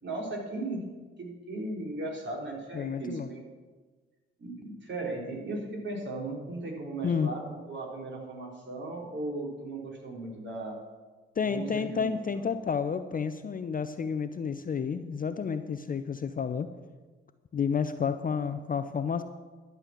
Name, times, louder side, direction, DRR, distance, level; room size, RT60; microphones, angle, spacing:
voice 1, 0.0-0.8 1.2-3.4 4.4-10.8 11.4-12.4, right 2 dB, 40° right, -1 dB, 3.8 m, -37 dB
voice 2, 2.7-3.3 7.0-7.3 11.4-16.7 17.5-19.2, left 6 dB, 30° left, 11 dB, 0.6 m, -30 dB
12.0 x 7.1 x 7.2 m, 1.3 s
figure-of-eight pair, 45°, 29 cm